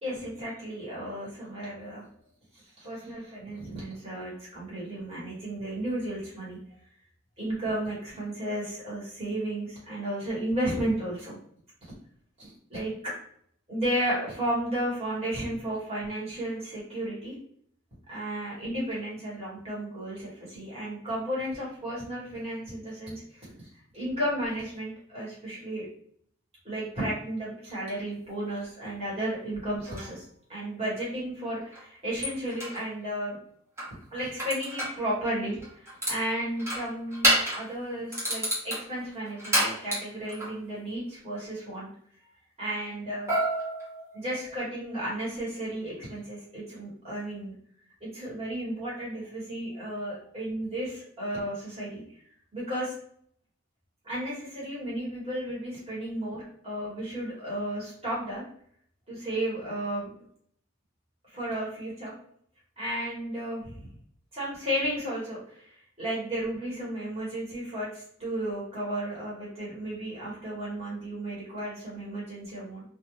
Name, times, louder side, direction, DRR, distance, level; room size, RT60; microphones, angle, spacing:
voice 1, 0.0-2.0 2.5-6.6 7.4-11.4 12.4-13.1 13.7-17.3 18.1-23.5 23.9-25.9 26.6-30.2 30.5-33.4 34.1-41.9 42.6-43.3 44.1-47.5 48.0-52.0 52.5-52.9 54.0-58.4 59.1-60.1 61.3-62.1 62.8-63.8 64.3-72.8, right 1 dB, 30° right, -7 dB, 1.2 m, -33 dB
sound 1, 29.8-30.1 31.7-31.8 32.2-32.8 33.8-35.0 35.6-36.2 36.6-37.7 38.1-40.5 43.3-44.5, right 1 dB, 10° right, 0.9 m, -29 dB
2.3 x 2.3 x 3.0 m, 0.63 s
head